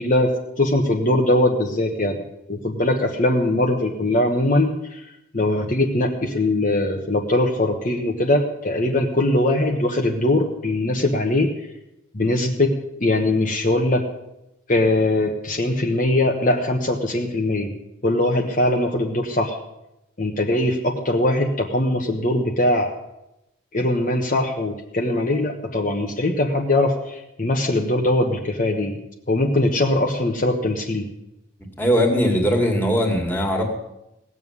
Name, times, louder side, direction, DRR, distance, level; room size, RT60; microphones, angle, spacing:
voice 1, 0.0-2.2 2.5-11.5 12.1-12.7 13.0-14.0 14.7-17.7 18.0-19.6 20.2-22.9 23.7-29.0 29.3-31.1, left 1 dB, 40° left, 1 dB, 1.2 m, -21 dB
voice 2, 31.8-33.6, equal, 10° left, 1 dB, 2.3 m, -20 dB
18.0 x 7.3 x 9.7 m, 0.90 s
head